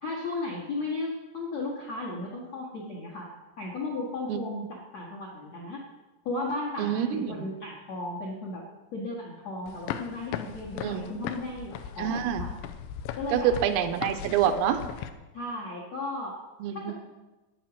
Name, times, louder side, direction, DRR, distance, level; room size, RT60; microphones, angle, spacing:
voice 1, 0.0-3.3 3.6-5.8 6.2-8.6 8.9-12.5 13.1-13.5 15.3-16.4 16.7-16.9, left 2 dB, 70° left, -2 dB, 1.6 m, -35 dB
voice 2, 6.8-7.5 10.8-11.1 12.0-12.5 13.3-14.8 16.6-16.9, right 9 dB, 90° right, 8 dB, 3.5 m, -27 dB
sound 1, 9.7-15.1, left 9 dB, 85° left, 2.8 m, -38 dB
13.5 x 9.3 x 6.0 m, 1.1 s
omnidirectional pair, 5.9 m